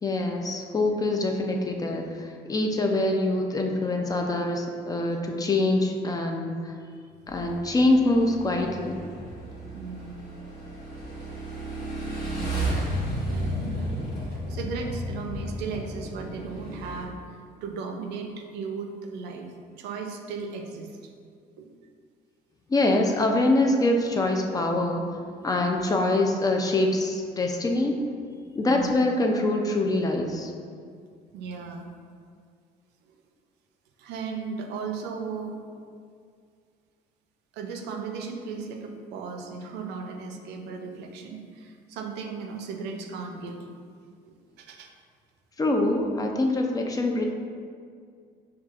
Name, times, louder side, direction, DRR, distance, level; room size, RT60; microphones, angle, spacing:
voice 1, 0.0-6.7 7.3-9.0 22.7-25.1 25.4-28.0 28.5-30.5 45.6-47.2, left 2 dB, 20° left, 2 dB, 0.3 m, -24 dB
Motorcycle / Engine, 7.3-17.0, right 1 dB, 65° left, 1.1 m, -33 dB
voice 2, 9.7-10.3 12.3-12.9 13.3-13.9 14.3-17.2 17.6-21.0 21.6-21.7 25.7-25.8 28.6-28.9 31.3-31.9 34.0-35.6 37.5-43.7 44.6-44.9, right 5 dB, 85° right, 3 dB, 0.5 m, -36 dB
5.6 x 2.3 x 2.4 m, 2.1 s
cardioid pair, 110°, 17 cm